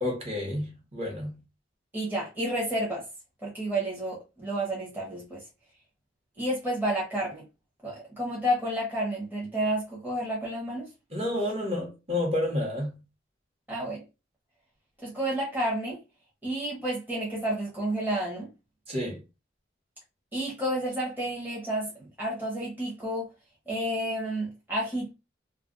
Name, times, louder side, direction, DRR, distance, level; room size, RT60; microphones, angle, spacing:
voice 1, 0.0-1.4 11.1-13.0 18.9-19.2, left 1 dB, 35° right, 1.1 m, -30 dB
voice 2, 1.9-3.0 3.4-5.4 6.4-7.4 7.8-10.9 13.7-14.0 15.0-16.0 16.4-18.5 20.3-23.3 23.7-25.1, right 1 dB, 10° right, 0.9 m, -30 dB
2.4 x 2.2 x 3.7 m
head